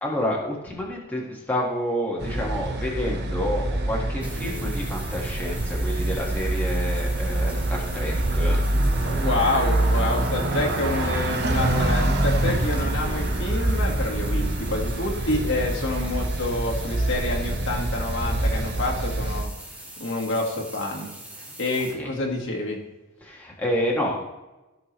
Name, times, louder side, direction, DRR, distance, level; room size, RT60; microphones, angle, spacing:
voice 1, 0.0-8.6 8.9-9.2 11.4-11.9 12.4-12.6 22.0-22.1 23.2-24.2, equal, 10° left, -3 dB, 1.9 m, -29 dB
sound 1, 2.2-19.4, right 1 dB, 55° right, 1.2 m, -25 dB
sound 2, 4.2-21.9, right 1 dB, 5° right, 1.7 m, -42 dB
voice 2, 9.0-19.5 20.0-21.1 21.6-22.8, left 2 dB, 65° left, -1 dB, 1.9 m, -28 dB
15.0 x 6.1 x 3.3 m, 1.0 s
head